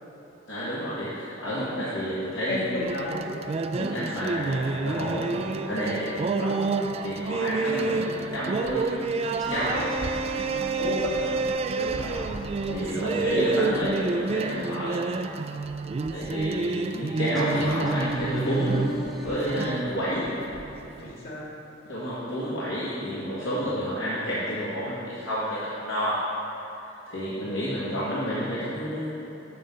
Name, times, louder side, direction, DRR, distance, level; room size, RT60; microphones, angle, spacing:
voice 1, 0.5-2.6 3.8-5.3 5.6-6.1 7.0-8.9 9.5-9.9 11.8-12.3 12.6-15.1 16.1-18.8 19.2-20.2 21.9-26.1 27.1-29.1, equal, 75° left, -10 dB, 1.7 m, -30 dB
voice 2, 1.4-1.8 2.5-3.4 3.8-4.0 6.3-6.7 10.7-11.4 12.5-13.4 19.9-20.0 21.0-21.5, left 1 dB, 60° left, -5 dB, 2.0 m, -34 dB
sound 1, 2.8-21.1, right 3 dB, 30° right, 0.3 m, -29 dB
Singing, 9.4-13.4 17.4-21.4, equal, ahead, 0.8 m, -40 dB
7.7 x 6.8 x 5.1 m, 3.0 s
head